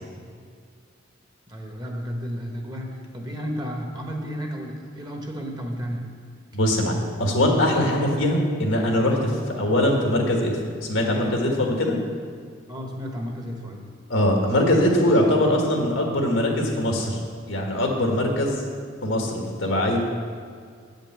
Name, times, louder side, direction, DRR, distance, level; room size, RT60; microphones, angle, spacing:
voice 1, 1.5-6.1 12.7-13.8, equal, 20° right, 1 dB, 1.1 m, -32 dB
voice 2, 6.5-10.5 10.9-12.0 14.1-17.2 17.5-18.6 19.0-20.0, left 1 dB, 85° left, 1 dB, 1.6 m, -22 dB
8.5 x 5.3 x 7.4 m, 2.1 s
head